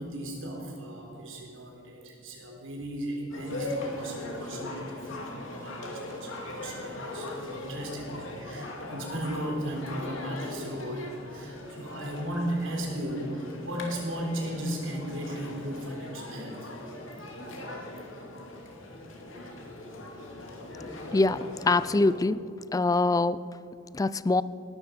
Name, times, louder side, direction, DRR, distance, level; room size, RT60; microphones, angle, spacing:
voice 1, 0.0-16.7, right 1 dB, 75° right, 0 dB, 3.7 m, -36 dB
sound 1, 3.3-22.2, left 2 dB, 80° left, 2.5 m, -40 dB
voice 2, 21.1-22.4 22.7-23.4 23.9-24.4, left 3 dB, 20° left, 17 dB, 0.3 m, -24 dB
18.0 x 12.0 x 5.3 m, 2.6 s
head